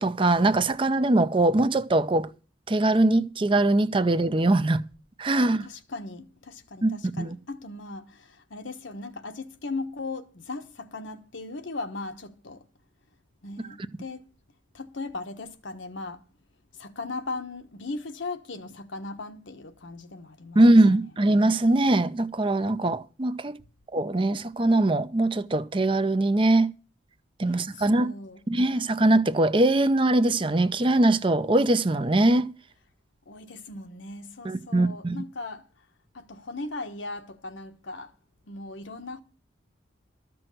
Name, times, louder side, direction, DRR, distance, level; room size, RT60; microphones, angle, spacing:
voice 1, 0.0-2.3 2.7-4.8 5.2-5.7 6.8-6.9 7.2-7.4 20.6-23.6 23.9-26.7 27.4-28.1 28.5-32.5 34.4-35.2, right 2 dB, 25° right, 0.5 m, -22 dB
voice 2, 5.6-12.6 13.4-14.2 14.7-16.2 16.7-20.6 27.5-28.4 33.2-35.7 36.1-38.1 38.4-39.2, left 3 dB, 75° left, 1.2 m, -38 dB
13.5 x 6.2 x 7.7 m
head